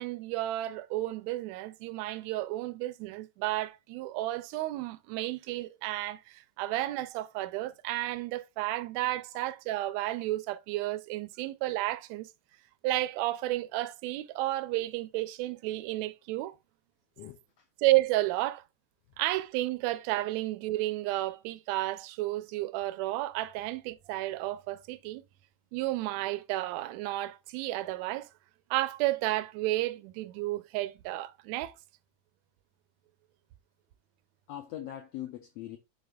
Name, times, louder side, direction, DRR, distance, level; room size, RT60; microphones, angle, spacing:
voice 1, 0.0-12.3 12.8-16.6 17.8-18.6 19.2-25.2 25.7-28.3 28.7-31.7, right 16 dB, 80° right, 1.6 m, -32 dB
voice 2, 17.2-17.7 34.5-35.8, left 12 dB, 85° left, 1.4 m, -42 dB
11.5 x 3.9 x 2.3 m
omnidirectional pair, 3.5 m